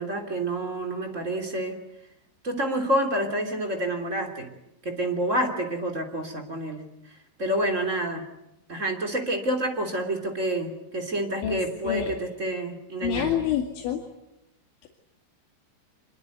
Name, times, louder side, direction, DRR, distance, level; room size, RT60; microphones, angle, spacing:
voice 1, 0.0-1.8 2.4-4.5 4.8-6.8 7.4-8.2 8.7-13.4, right 1 dB, 20° right, 3 dB, 2.6 m, -28 dB
voice 2, 11.4-12.1 13.0-14.0 14.8-14.9, left 9 dB, 80° left, 1 dB, 4.6 m, -28 dB
25.5 x 22.5 x 9.4 m, 0.86 s
omnidirectional pair, 5.4 m